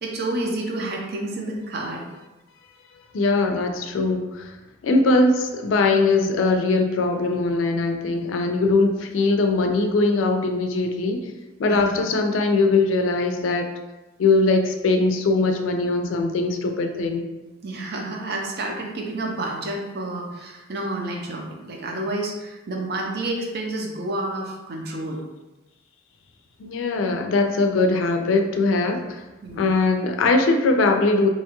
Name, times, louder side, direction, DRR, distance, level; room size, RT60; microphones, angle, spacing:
voice 1, 0.0-2.0 11.6-11.8 17.6-25.2 29.4-29.7, right 2 dB, 55° right, 1 dB, 0.5 m, -29 dB
voice 2, 3.1-4.5 4.8-11.2 11.6-13.7 14.2-17.2 26.6-29.2 29.5-31.3, left 3 dB, 85° left, 4 dB, 0.4 m, -21 dB
2.9 x 2.2 x 2.9 m, 1.1 s
head